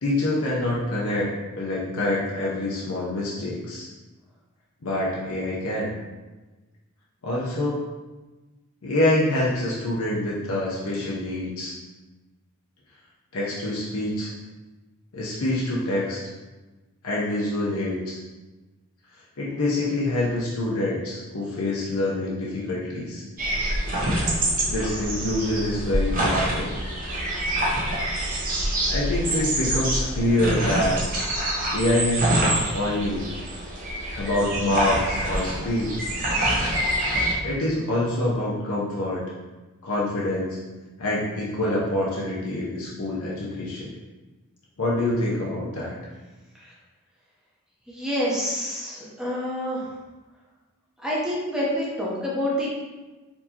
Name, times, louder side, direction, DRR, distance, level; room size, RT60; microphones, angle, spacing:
voice 1, 0.0-1.3 1.6-3.9 4.8-5.9 7.2-7.8 8.8-11.7 13.3-14.3 15.1-16.2 17.0-18.2 19.4-23.2 24.7-26.8 28.9-31.0 31.7-33.3 34.1-36.0 37.4-39.2 39.8-40.6 41.0-43.9 44.8-46.0, left 1 dB, 80° left, -6 dB, 0.7 m, -26 dB
sound 1, 23.4-37.3, right 1 dB, 40° right, 0.8 m, -26 dB
voice 2, 47.9-49.8 51.0-52.7, equal, 5° right, -6 dB, 0.7 m, -27 dB
4.5 x 2.8 x 2.8 m, 1.2 s
head